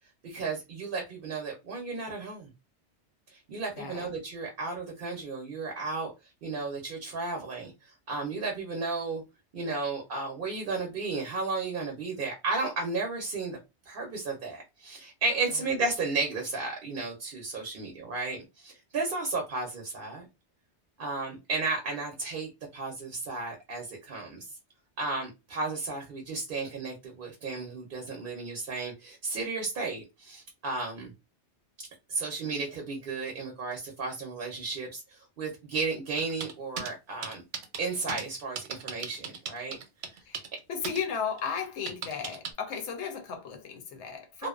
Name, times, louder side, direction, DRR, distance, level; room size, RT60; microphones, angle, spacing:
voice 1, 0.2-2.5 3.3-6.1 6.4-9.2 9.5-13.6 13.9-20.2 21.0-24.4 25.0-31.1 32.1-37.4 37.8-39.8 40.1-40.2 44.4-44.5, right 3 dB, 55° right, 0.7 m, -33 dB
voice 2, 3.8-4.1 40.2-40.4 40.7-44.5, left 6 dB, 75° left, 1.0 m, -35 dB
sound 1, 36.2-36.9 37.2-38.2 38.6-40.6 40.8-41.0 41.4-42.5, right 6 dB, 90° right, 0.9 m, -37 dB
2.5 x 2.1 x 2.3 m
omnidirectional pair, 1.2 m